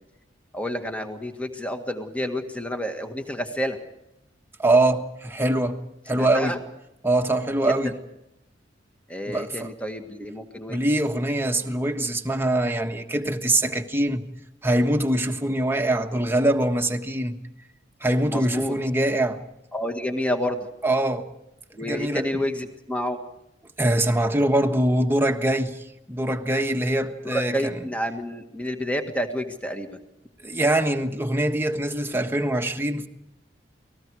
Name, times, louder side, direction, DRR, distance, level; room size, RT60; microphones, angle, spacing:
voice 1, 0.5-3.8 6.1-6.6 9.1-10.9 18.2-18.7 19.7-20.7 21.7-23.2 27.2-30.0, equal, 5° left, 1.8 m, -29 dB
voice 2, 4.6-5.8 6.1-6.5 7.0-8.0 9.2-9.7 10.7-14.2 14.6-17.4 18.0-19.4 20.8-21.3 21.8-22.4 23.8-27.8 30.4-33.1, right 1 dB, 10° right, 1.5 m, -23 dB
29.5 x 19.5 x 4.8 m
head